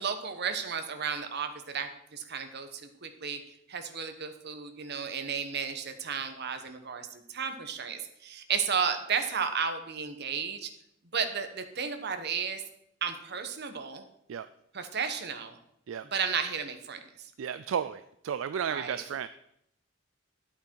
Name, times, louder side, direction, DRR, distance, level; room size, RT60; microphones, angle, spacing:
voice 1, 0.0-3.4 3.7-10.7 11.1-12.6 13.0-14.1 14.7-15.6 16.1-17.0 18.7-19.0, right 6 dB, 55° right, 7 dB, 1.2 m, -33 dB
voice 2, 17.4-19.3, right 8 dB, 70° right, 13 dB, 0.4 m, -33 dB
11.0 x 8.2 x 4.6 m, 0.77 s
head